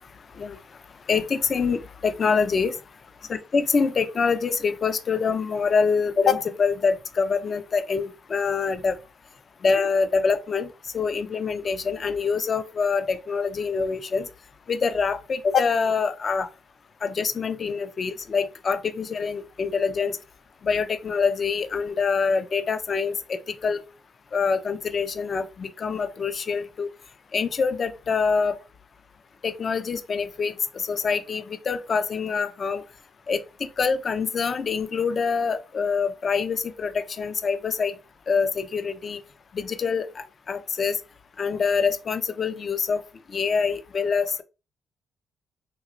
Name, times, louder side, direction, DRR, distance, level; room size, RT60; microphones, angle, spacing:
voice 1, 1.1-2.8 3.3-9.0 9.6-10.7 10.9-14.3 14.7-16.5 17.0-20.2 20.6-23.8 24.3-26.9 27.3-28.6 29.4-32.8 33.3-37.9 38.3-39.2 39.5-41.0 41.4-43.0 43.3-44.4, left 5 dB, 45° left, 0.4 m, -25 dB
3.0 x 2.9 x 2.5 m
cardioid pair, 95°, 0 cm